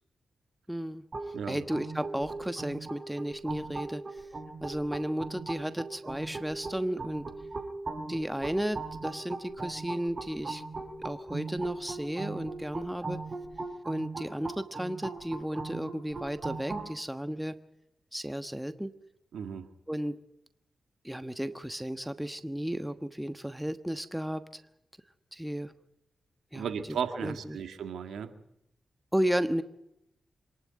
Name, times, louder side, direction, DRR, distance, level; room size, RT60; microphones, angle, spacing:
voice 1, 0.7-4.3 4.6-7.3 8.1-10.6 11.0-13.2 13.8-17.5 18.1-18.9 19.9-20.2 21.0-24.4 25.3-25.7 26.5-27.6 29.1-29.6, equal, 5° right, 10 dB, 1.2 m, -34 dB
sound 1, 1.1-16.9, right 3 dB, 45° right, 5.3 m, -39 dB
voice 2, 19.3-19.7 26.5-28.3, right 7 dB, 90° right, 8 dB, 1.9 m, -35 dB
26.5 x 11.5 x 9.5 m, 0.80 s
cardioid pair, 65°, 0 cm